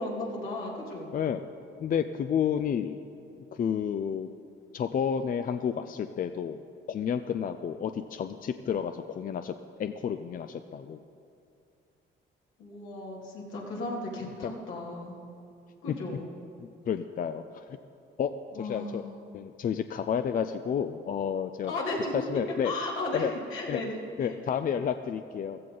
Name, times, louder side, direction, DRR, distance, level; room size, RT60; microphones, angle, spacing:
voice 1, 0.0-1.1 12.6-15.1 15.8-16.3 18.5-19.1 21.6-24.4, left 2 dB, 80° left, -3 dB, 2.7 m, -35 dB
voice 2, 1.8-3.0 3.5-4.3 4.7-6.6 6.9-9.5 9.8-11.0 14.4-14.5 15.9-16.0 16.6-17.6 18.2-18.3 18.6-19.0 19.3-21.7 22.3-22.7 23.1-23.3 23.7-23.8 24.2-25.6, left 8 dB, 45° left, 9 dB, 0.5 m, -30 dB
15.5 x 14.0 x 3.9 m, 2.6 s
cardioid pair, 90°, 20 cm